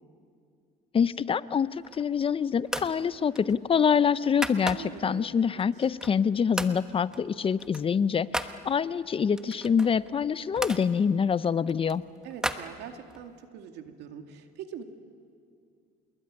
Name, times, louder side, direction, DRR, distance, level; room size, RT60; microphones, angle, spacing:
voice 1, 0.9-12.0, left 7 dB, 35° left, 16 dB, 0.6 m, -26 dB
sound 1, 1.7-2.2 2.7-3.0 3.3-5.1 5.6-6.3 6.6-6.8 7.1-8.6 9.3-10.8 11.4-13.3, right 1 dB, 5° right, 1.2 m, -36 dB
voice 2, 4.7-5.6 9.2-9.6 12.2-14.8, right 8 dB, 85° right, 5 dB, 2.3 m, -43 dB
26.5 x 21.0 x 9.7 m, 2.3 s
cardioid pair, 110°, 17 cm